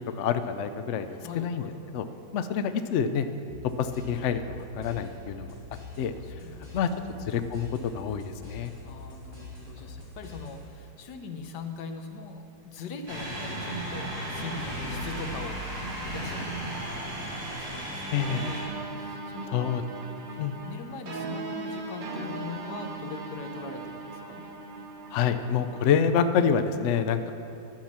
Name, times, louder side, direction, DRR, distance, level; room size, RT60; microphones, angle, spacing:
voice 1, 0.0-1.1 1.3-1.6 1.9-2.0 2.3-3.3 3.8-5.5 6.0-6.1 6.7-6.9 7.3-8.7 18.1-18.4 19.5-19.8 20.4-20.6 25.1-27.3, left 7 dB, 70° left, 9 dB, 0.7 m, -27 dB
voice 2, 1.1-1.7 5.8-7.2 8.8-18.0 18.3-19.7 20.6-24.4 27.3-27.4, left 4 dB, 85° left, 6 dB, 1.4 m, -42 dB
sound 1, 3.5-10.9, left 2 dB, 15° left, 2.4 m, -45 dB
sound 2, 13.1-18.6, right 1 dB, 70° right, 3.0 m, -34 dB
sound 3, 18.2-25.8, right 3 dB, 45° right, 0.7 m, -38 dB
12.0 x 5.8 x 7.3 m, 2.8 s
omnidirectional pair, 1.8 m